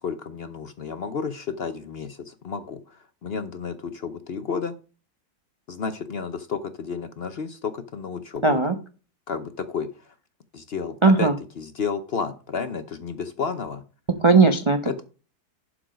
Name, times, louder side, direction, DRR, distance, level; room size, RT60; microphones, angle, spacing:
voice 1, 0.0-4.7 5.7-8.6 9.3-9.9 10.5-11.3 11.6-13.8 14.8-15.0, left 5 dB, 50° left, 9 dB, 0.8 m, -31 dB
voice 2, 8.4-8.7 11.0-11.3 14.2-15.0, right 3 dB, 35° right, 6 dB, 0.4 m, -18 dB
11.5 x 4.7 x 5.0 m, 0.35 s
omnidirectional pair, 1.7 m